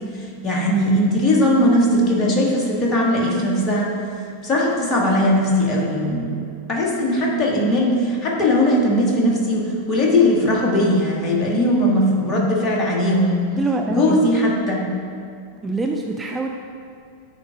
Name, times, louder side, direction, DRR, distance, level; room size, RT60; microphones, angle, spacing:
voice 1, 0.1-3.9 4.4-6.3 6.7-13.4 13.9-14.8, left 1 dB, 25° left, -3 dB, 1.7 m, -19 dB
voice 2, 13.6-14.3 15.6-16.5, right 2 dB, 15° right, 2 dB, 0.4 m, -24 dB
9.1 x 4.2 x 5.8 m, 2.4 s
figure-of-eight pair, 90°, 0 cm